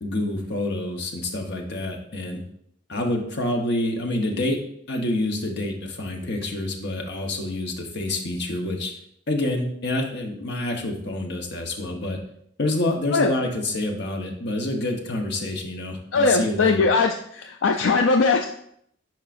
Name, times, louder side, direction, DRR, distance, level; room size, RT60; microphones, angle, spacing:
voice 1, 0.0-2.4 2.9-4.6 4.9-8.9 9.3-12.2 12.6-16.9, left 1 dB, 60° left, 2 dB, 1.1 m, -27 dB
voice 2, 16.1-18.5, left 4 dB, 80° left, 5 dB, 0.4 m, -20 dB
10.5 x 4.8 x 2.6 m, 0.71 s
head